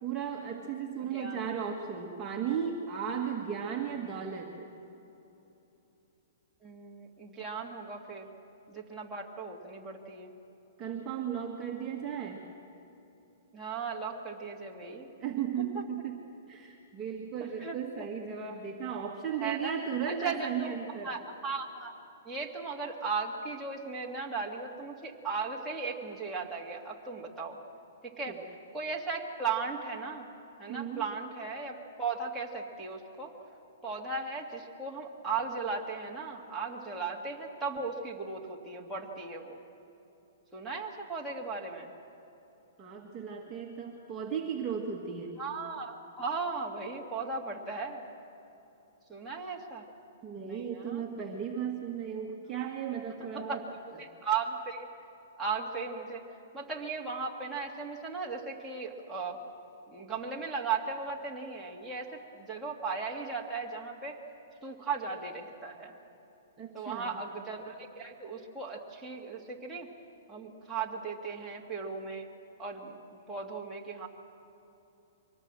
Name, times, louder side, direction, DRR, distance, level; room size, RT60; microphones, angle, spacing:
voice 1, 0.0-4.7 10.8-12.4 15.2-16.2 16.5-21.2 28.3-28.4 30.7-31.1 42.8-45.4 50.2-53.6 66.6-67.2, right 7 dB, 20° right, -2 dB, 1.7 m, -35 dB
voice 2, 1.0-1.5 6.6-8.3 8.7-10.3 13.5-15.1 15.6-15.8 17.6-18.1 19.4-19.7 20.1-20.8 21.0-21.9 22.2-27.6 28.0-28.4 28.7-30.3 30.6-33.3 33.8-39.6 40.5-41.9 45.4-48.1 49.1-49.9 50.4-51.0 53.3-53.6 54.0-54.9 55.4-56.2 56.5-59.4 59.9-64.2 64.6-66.0 66.7-69.9 70.3-72.3 72.6-74.1, right 4 dB, 5° right, -4 dB, 2.2 m, -37 dB
24.0 x 19.0 x 7.6 m, 2.9 s
hypercardioid pair, 150°, 0 cm